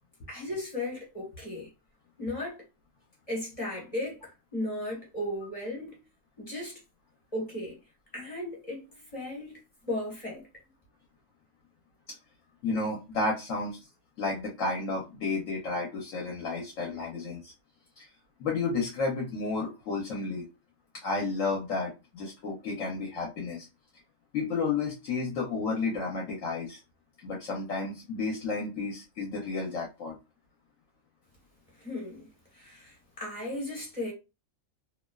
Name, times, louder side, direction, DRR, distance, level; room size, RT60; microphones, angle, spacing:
voice 1, 0.3-1.7 2.2-2.6 3.3-6.0 6.4-6.8 7.3-7.8 8.1-8.8 9.1-10.4 31.8-32.3 32.5-34.1, left 1 dB, 25° left, 1.1 m, -36 dB
voice 2, 12.6-13.8 14.2-17.5 18.0-18.1 18.4-20.5 21.0-23.7 24.3-26.8 27.2-30.1, left 3 dB, 65° left, 1.0 m, -32 dB
2.8 x 2.1 x 2.2 m
omnidirectional pair, 1.5 m